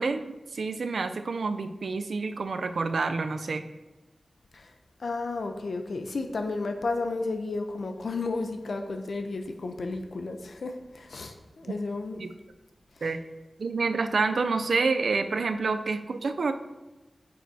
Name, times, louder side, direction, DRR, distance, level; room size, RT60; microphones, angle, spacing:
voice 1, 0.0-3.6 12.2-12.3 13.0-13.2 13.6-16.5, right 4 dB, 90° right, 9 dB, 0.4 m, -28 dB
voice 2, 5.0-12.2 13.0-13.1, left 3 dB, 80° left, 6 dB, 0.6 m, -32 dB
9.2 x 6.3 x 2.7 m, 1.1 s
wide cardioid pair, 90°, 0 cm